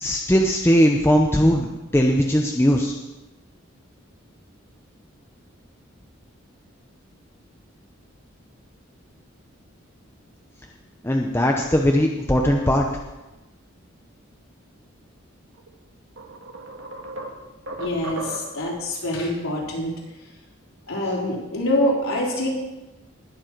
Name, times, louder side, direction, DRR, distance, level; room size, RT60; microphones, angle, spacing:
voice 1, 0.0-2.9 11.0-12.8, equal, 10° left, 1 dB, 0.7 m, -19 dB
sound 1, 15.6-15.7 16.2-18.7, right 2 dB, 65° right, 1.8 m, -35 dB
voice 2, 17.8-19.9 20.9-22.5, left 1 dB, 85° left, -3 dB, 3.8 m, -25 dB
20.0 x 7.5 x 4.6 m, 1.0 s
head